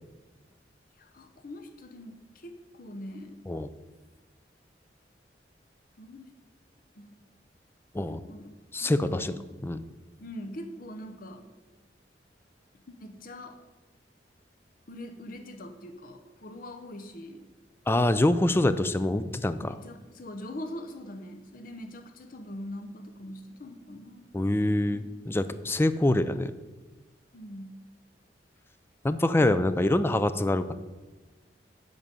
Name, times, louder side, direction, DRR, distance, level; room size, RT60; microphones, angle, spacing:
voice 1, 0.9-3.4 6.0-6.3 6.9-7.2 8.0-8.5 8.8-9.4 10.2-11.5 12.7-13.6 14.9-17.5 19.6-25.0 27.3-27.8, left 1 dB, 50° left, 6 dB, 0.8 m, -43 dB
voice 2, 8.7-9.3 9.6-9.8 17.9-19.7 24.3-26.5 29.0-30.7, left 1 dB, 15° left, 12 dB, 0.4 m, -25 dB
10.5 x 4.0 x 7.4 m, 1.2 s
head